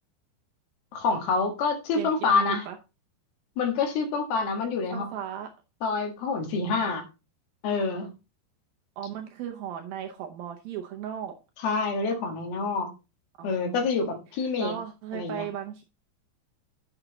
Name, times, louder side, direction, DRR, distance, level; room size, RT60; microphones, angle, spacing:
voice 1, 0.9-2.7 3.6-5.1 5.8-7.0 7.6-8.1 11.6-12.9 13.4-14.7 15.1-15.4, left 4 dB, 65° left, 3.2 m, -27 dB
voice 2, 2.0-2.8 4.9-5.5 9.0-11.3 13.4-13.9 14.6-15.8, right 10 dB, 75° right, 2.2 m, -36 dB
9.0 x 7.1 x 3.9 m
omnidirectional pair, 5.0 m